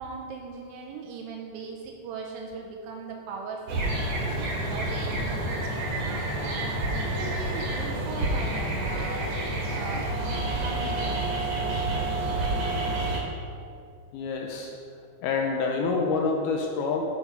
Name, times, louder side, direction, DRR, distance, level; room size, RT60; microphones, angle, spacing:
voice 1, 0.0-6.2 7.0-10.2 10.4-11.9, right 4 dB, 90° right, 1 dB, 2.0 m, -39 dB
sound 1, 3.7-13.2, right 2 dB, 60° right, 2.0 m, -29 dB
voice 2, 14.1-14.8 15.2-17.0, left 4 dB, 80° left, 1 dB, 2.3 m, -27 dB
9.7 x 5.4 x 5.2 m, 2.3 s
omnidirectional pair, 5.0 m